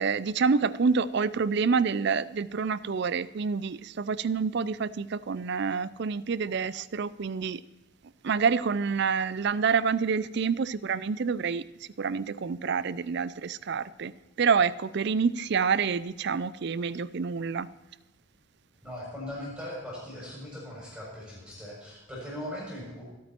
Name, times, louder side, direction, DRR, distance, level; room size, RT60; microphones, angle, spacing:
voice 1, 0.0-7.6 8.2-11.6 12.0-14.1 14.4-17.7, right 5 dB, 50° right, 0.4 m, -27 dB
voice 2, 18.8-23.0, left 1 dB, 5° right, 6.8 m, -39 dB
25.5 x 8.7 x 4.4 m
head